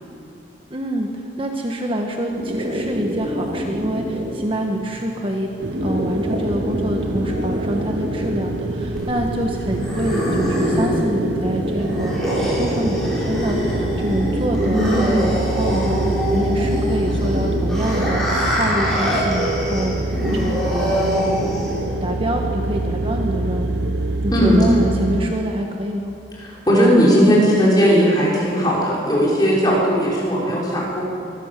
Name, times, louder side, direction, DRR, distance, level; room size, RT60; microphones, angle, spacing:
voice 1, 0.7-5.5 5.8-21.6 22.0-23.8 24.2-26.1, equal, 30° right, 2 dB, 1.4 m, -26 dB
sound 1, 2.3-20.3, equal, 45° right, 2.5 m, -29 dB
sound 2, 5.6-25.3, right 2 dB, 75° right, 0.9 m, -26 dB
sound 3, 9.0-22.0, equal, ahead, 6.9 m, -24 dB
voice 2, 24.3-24.6 26.4-31.0, equal, 20° left, -6 dB, 5.9 m, -17 dB
24.0 x 15.5 x 7.6 m, 2.5 s
head